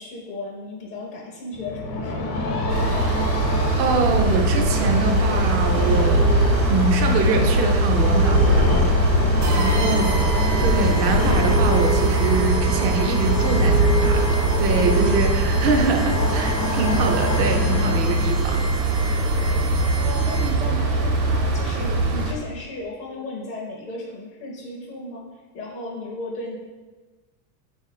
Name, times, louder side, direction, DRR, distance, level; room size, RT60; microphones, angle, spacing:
voice 1, 0.0-2.4 9.9-10.3 20.0-25.2 25.5-26.6, left 2 dB, 25° left, -3 dB, 0.5 m, -35 dB
sound 1, 1.5-18.5, equal, 70° left, 0.9 m, -23 dB
sound 2, 2.7-22.3, right 2 dB, 90° right, 0.9 m, -22 dB
voice 2, 3.8-8.9 9.5-10.1 10.6-18.6, right 3 dB, 30° right, 2 dB, 0.4 m, -24 dB
sound 3, 9.4-20.8, right 3 dB, 65° right, 0.9 m, -34 dB
3.8 x 2.5 x 4.0 m, 1.3 s
supercardioid pair, 135°, 49 cm